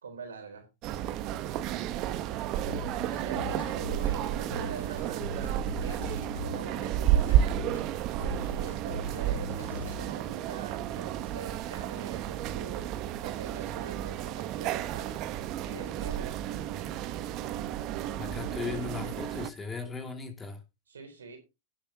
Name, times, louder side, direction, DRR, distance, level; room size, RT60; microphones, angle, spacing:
voice 1, 0.0-0.7 3.3-7.6 8.2-15.2 15.6-16.3 20.9-21.4, right 5 dB, 85° right, 3.9 m, -44 dB
sound 1, 0.8-19.5, right 11 dB, 45° right, 1.0 m, -32 dB
sound 2, 2.7-10.1, left 5 dB, 85° left, 0.9 m, -42 dB
voice 2, 18.2-20.6, left 5 dB, 15° left, 2.7 m, -37 dB
18.0 x 7.7 x 2.8 m
hypercardioid pair, 105°, 0 cm